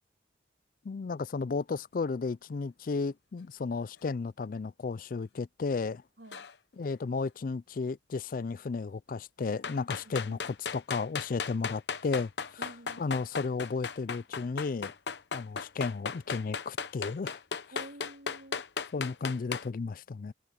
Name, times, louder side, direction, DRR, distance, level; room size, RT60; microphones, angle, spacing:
voice 1, 0.8-6.0 6.8-10.4 10.7-12.3 13.0-14.9 15.3-17.4 18.9-20.3, left 4 dB, 50° left, 0.4 m, -33 dB
sound 1, 6.3-6.5 9.6-19.7, left 6 dB, 70° left, 0.9 m, -36 dB
voice 2, 10.0-10.4 12.6-13.2 17.7-18.6, right 1 dB, 80° right, 2.9 m, -50 dB
head